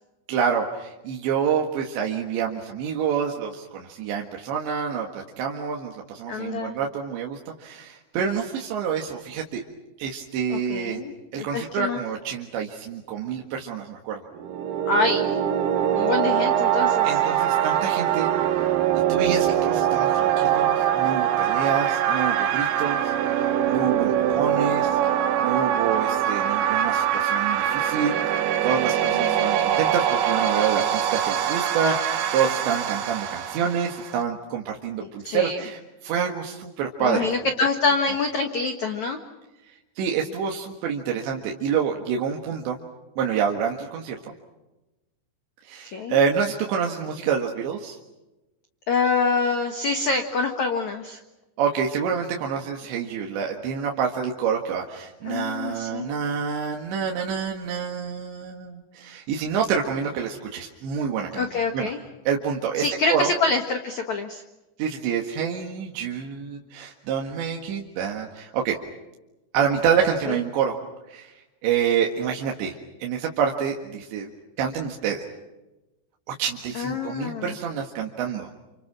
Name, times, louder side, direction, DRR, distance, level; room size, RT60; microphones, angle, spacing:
voice 1, 0.3-9.6 10.0-11.0 11.3-14.2 17.0-18.3 19.1-37.3 40.0-42.8 43.2-44.2 45.6-48.0 51.6-61.5 61.7-61.9 62.3-63.3 64.8-68.8 69.5-70.8 71.1-71.3 71.6-74.3 74.6-75.2 76.4-78.5, right 7 dB, 65° right, 1 dB, 3.8 m, -27 dB
voice 2, 6.3-6.8 10.5-12.0 14.9-15.4 15.9-17.1 29.0-29.5 35.0-35.6 37.0-39.2 45.9-46.2 48.9-51.2 55.2-56.1 61.3-62.0 62.8-64.4 70.3-70.4 76.7-77.5, left 4 dB, 65° left, 5 dB, 1.8 m, -26 dB
sound 1, 14.3-34.2, right 10 dB, 85° right, 4.3 m, -23 dB
30.0 x 29.0 x 6.2 m, 1.0 s
omnidirectional pair, 5.8 m